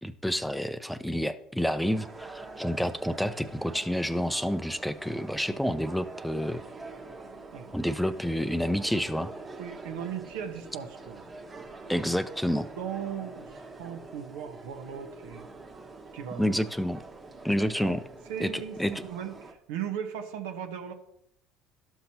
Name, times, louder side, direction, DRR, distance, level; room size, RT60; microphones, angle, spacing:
voice 1, 0.0-6.6 7.7-9.3 11.9-12.7 16.4-17.0 17.4-18.0 18.4-18.9, equal, ahead, 12 dB, 0.4 m, -29 dB
sound 1, 1.8-19.5, right 3 dB, 25° right, 1.2 m, -45 dB
voice 2, 9.6-11.3 12.8-15.5 16.1-16.5 17.8-18.0 18.3-20.9, right 8 dB, 85° right, 5 dB, 1.0 m, -37 dB
12.0 x 5.9 x 2.8 m, 0.74 s
supercardioid pair, 90°, 0 cm